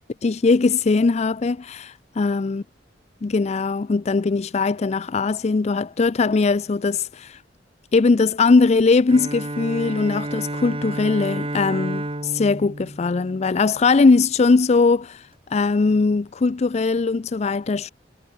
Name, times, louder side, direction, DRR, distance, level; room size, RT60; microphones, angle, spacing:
voice 1, 0.2-2.6 3.2-7.4 7.9-15.2 15.5-17.9, left 4 dB, 35° left, 0.4 m, -20 dB
Bowed string instrument, 9.1-14.0, right 1 dB, 30° right, 2.2 m, -31 dB
head